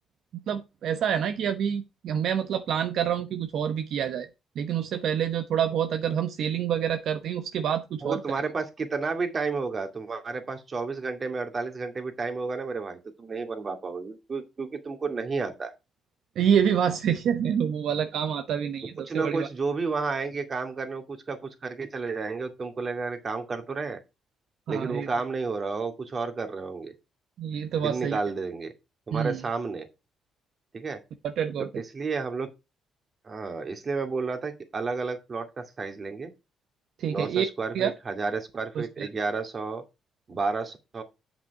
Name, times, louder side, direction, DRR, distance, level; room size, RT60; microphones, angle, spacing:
voice 1, 0.5-4.3 4.6-8.2 16.4-19.5 24.7-25.1 27.4-28.2 29.1-29.4 31.2-31.7 37.0-37.5 37.7-37.9 38.7-39.1, right 8 dB, 75° right, 0.9 m, -27 dB
voice 2, 8.0-15.7 19.1-24.0 24.7-26.9 27.8-28.7 29.1-29.9 30.7-31.0 31.9-32.5 33.2-36.3 37.1-39.8 40.3-41.0, right 4 dB, 40° right, 2.3 m, -31 dB
8.3 x 5.9 x 4.8 m
cardioid pair, 75°, 0 cm